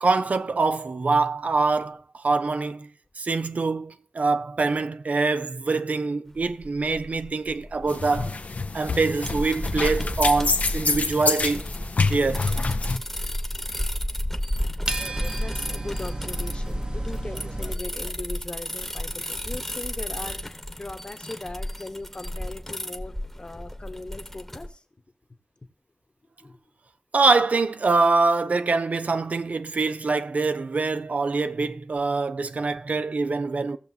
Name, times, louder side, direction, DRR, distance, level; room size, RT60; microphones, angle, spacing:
voice 1, 0.0-2.9 3.2-8.4 8.7-11.6 12.0-12.5 27.1-33.8, right 3 dB, 80° right, 0.5 m, -24 dB
sound 1, 6.4-24.7, left 1 dB, 10° left, 1.0 m, -32 dB
sound 2, 7.9-13.0, left 4 dB, 85° left, 0.6 m, -27 dB
sound 3, 14.9-17.7, right 2 dB, 40° right, 0.9 m, -33 dB
voice 2, 15.4-24.8 26.4-26.6, left 2 dB, 45° left, 1.1 m, -39 dB
16.5 x 6.8 x 2.8 m
wide cardioid pair, 65°, 2 cm